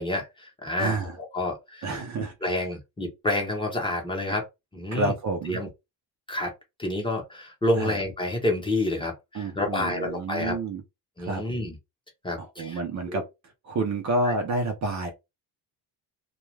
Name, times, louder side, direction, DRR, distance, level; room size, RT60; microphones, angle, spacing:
voice 1, 0.0-1.9 2.4-4.4 4.7-5.1 5.5-5.7 6.3-6.5 6.8-10.6 11.2-11.7 12.2-12.8 13.1-13.2 14.2-14.3, left 1 dB, 10° left, 0.8 m, -29 dB
voice 2, 0.8-1.2 1.8-2.5 4.9-5.6 7.7-8.0 9.3-10.8 11.2-11.4 12.4-13.2 13.6-15.1, right 2 dB, 40° right, 0.6 m, -29 dB
2.3 x 2.3 x 3.1 m
cardioid pair, 135°, 44 cm